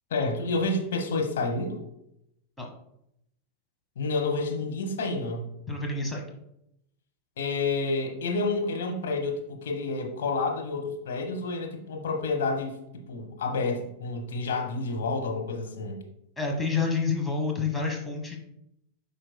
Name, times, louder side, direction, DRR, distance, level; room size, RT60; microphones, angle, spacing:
voice 1, 0.1-1.8 4.0-5.5 7.4-12.8 13.1-16.0, left 3 dB, 60° left, 1 dB, 1.3 m, -29 dB
voice 2, 5.7-6.3 16.4-18.4, left 4 dB, 10° left, 1 dB, 1.2 m, -28 dB
8.9 x 5.2 x 2.2 m, 0.78 s
figure-of-eight pair, 90°, 0 cm